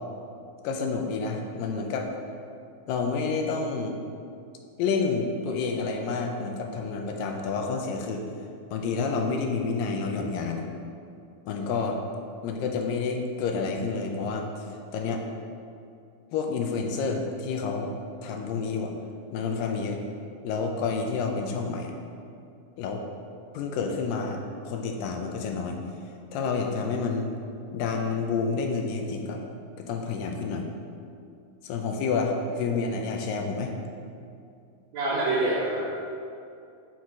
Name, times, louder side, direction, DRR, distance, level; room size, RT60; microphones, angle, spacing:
voice 1, 0.6-2.1 2.9-4.0 4.8-8.2 8.7-10.6 11.5-12.0 12.4-14.5 14.9-15.2 16.3-17.9 18.2-18.9 19.3-20.0 20.4-21.9 22.8-23.0 23.5-24.4 24.7-25.8 26.3-27.3 27.7-29.4 29.9-30.7 31.6-33.7, left 4 dB, 85° left, 3 dB, 2.3 m, -29 dB
voice 2, 34.9-36.0, right 2 dB, 65° right, -6 dB, 2.0 m, -26 dB
6.1 x 4.1 x 4.7 m, 2.5 s
omnidirectional pair, 4.0 m